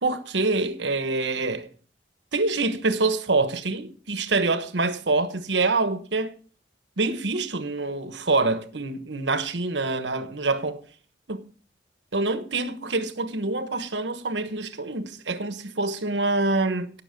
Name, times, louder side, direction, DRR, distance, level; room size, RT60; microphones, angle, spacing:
voice 1, 0.0-1.7 2.3-6.3 7.0-10.8 11.3-11.4 12.1-16.9, right 3 dB, 85° right, 1.2 m, -26 dB
17.5 x 6.5 x 5.2 m
head